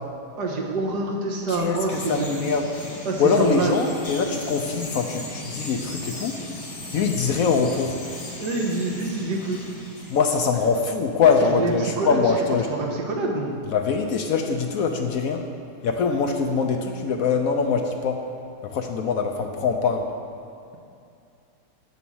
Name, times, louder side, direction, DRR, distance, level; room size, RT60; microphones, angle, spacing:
voice 1, 0.4-2.3 3.1-3.8 8.4-9.7 11.5-12.2 12.7-13.6, right 3 dB, 75° right, -1 dB, 1.8 m, -26 dB
voice 2, 1.5-2.7 3.2-6.4 6.9-8.0 10.1-12.7 13.7-15.4 15.8-18.2 18.6-20.1, left 5 dB, 65° left, 4 dB, 0.9 m, -23 dB
Bird vocalization bird call bird song, 1.9-10.8, left 2 dB, 85° left, 2.7 m, -37 dB
8.2 x 7.0 x 6.2 m, 2.5 s
omnidirectional pair, 1.8 m